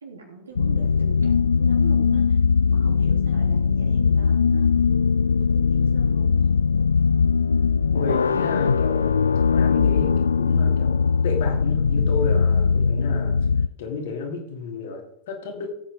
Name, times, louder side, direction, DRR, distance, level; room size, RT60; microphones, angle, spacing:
voice 1, 0.0-2.4 2.7-4.7 5.4-6.6, right 4 dB, 70° right, 1 dB, 3.1 m, -40 dB
sound 1, 0.6-13.7, left 5 dB, 75° left, 0.3 m, -20 dB
voice 2, 7.9-13.3 13.8-15.7, left 4 dB, 55° left, 2 dB, 2.7 m, -32 dB
16.5 x 8.7 x 3.6 m, 0.74 s
figure-of-eight pair, 90°, 0 cm